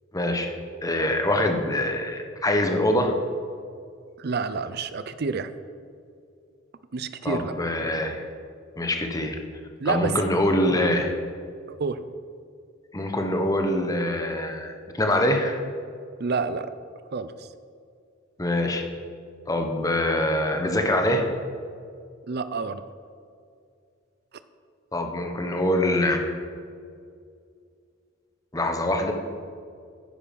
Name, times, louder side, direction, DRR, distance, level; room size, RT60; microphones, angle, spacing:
voice 1, 0.1-0.5 0.8-3.2 7.2-8.2 8.8-9.4 9.8-11.1 12.9-15.6 18.4-18.9 19.5-21.2 24.9-26.2 28.5-29.1, left 1 dB, 15° left, 4 dB, 1.0 m, -24 dB
voice 2, 4.2-5.5 6.9-7.5 9.8-10.1 11.7-12.0 16.2-16.7 17.1-17.3 22.3-22.8, right 4 dB, 50° right, 13 dB, 0.5 m, -28 dB
10.5 x 9.5 x 5.3 m, 2.3 s
head